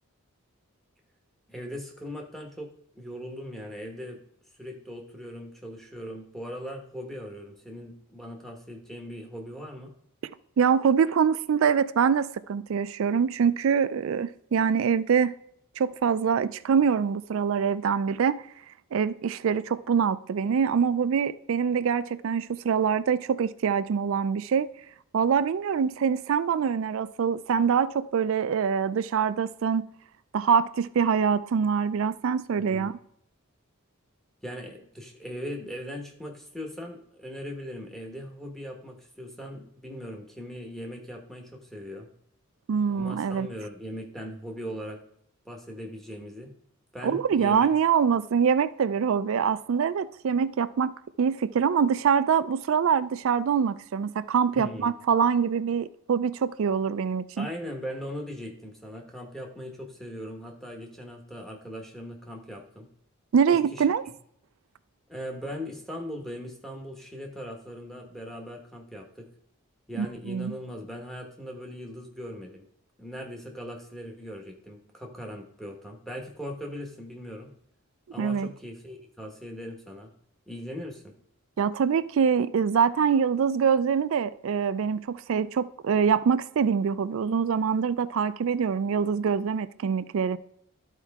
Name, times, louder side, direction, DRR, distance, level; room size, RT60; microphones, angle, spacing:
voice 1, 1.5-4.2 4.6-9.9 32.7-32.9 34.4-42.1 42.8-45.0 45.4-46.5 46.9-47.7 54.5-54.9 57.4-62.9 63.5-63.9 65.1-69.3 69.9-72.7 73.0-77.5 78.1-80.1 80.5-81.1, equal, ahead, 1.2 m, -39 dB
voice 2, 10.6-15.4 15.8-18.4 18.9-24.7 25.1-29.9 30.3-32.9 42.7-43.5 47.0-50.9 51.2-57.5 63.3-64.0 70.0-70.5 78.2-78.5 81.6-90.4, right 6 dB, 65° right, 0.3 m, -24 dB
12.5 x 4.5 x 3.5 m
head